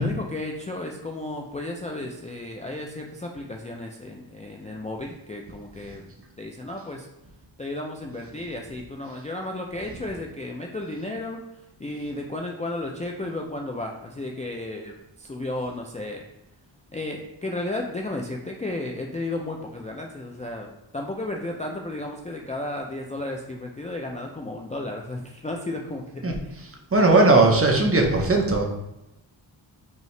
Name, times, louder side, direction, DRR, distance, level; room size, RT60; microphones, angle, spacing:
voice 1, 0.0-6.0 6.4-7.1 7.6-16.2 16.9-26.6 27.1-27.4, left 2 dB, 15° left, 0 dB, 0.4 m, -33 dB
voice 2, 26.9-28.6, right 2 dB, 30° right, 1 dB, 0.7 m, -18 dB
5.4 x 2.8 x 3.2 m, 0.92 s
wide cardioid pair, 125°, 46 cm